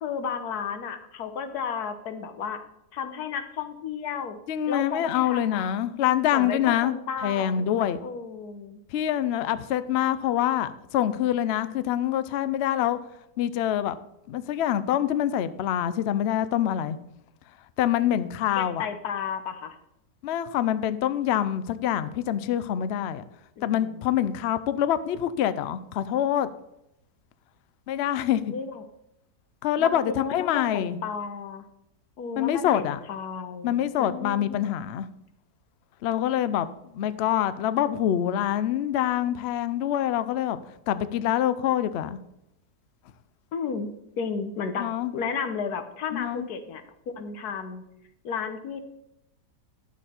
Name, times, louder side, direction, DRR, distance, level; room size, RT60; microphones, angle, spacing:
voice 1, 0.0-2.6 2.9-4.4 4.7-5.7 6.3-7.7 8.0-8.8 18.6-19.7 23.6-24.0 28.5-28.8 29.8-31.6 32.2-33.7 34.0-34.7 43.5-46.8 47.2-47.8 48.2-48.8, left 6 dB, 70° left, 9 dB, 1.4 m, -33 dB
voice 2, 4.5-8.0 8.9-13.0 13.4-14.0 14.3-17.0 17.8-18.9 20.2-23.2 23.6-26.5 27.9-28.4 29.6-31.0 32.4-33.0 33.6-35.1 36.0-36.7 36.9-40.6 40.9-42.2 44.8-45.1 46.1-46.5, left 11 dB, 85° left, 14 dB, 0.5 m, -25 dB
11.0 x 7.2 x 4.3 m, 0.84 s
omnidirectional pair, 1.8 m